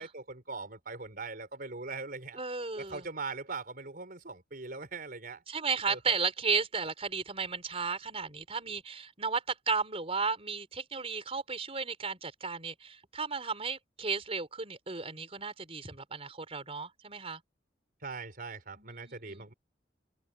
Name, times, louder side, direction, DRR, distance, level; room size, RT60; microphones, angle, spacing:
voice 1, 0.0-2.4 2.7-5.4 5.9-6.2 18.0-19.5, right 4 dB, 55° right, 4.6 m, -41 dB
voice 2, 2.4-3.0 5.5-17.4 18.8-19.5, right 5 dB, 35° right, 4.5 m, -34 dB
open air
head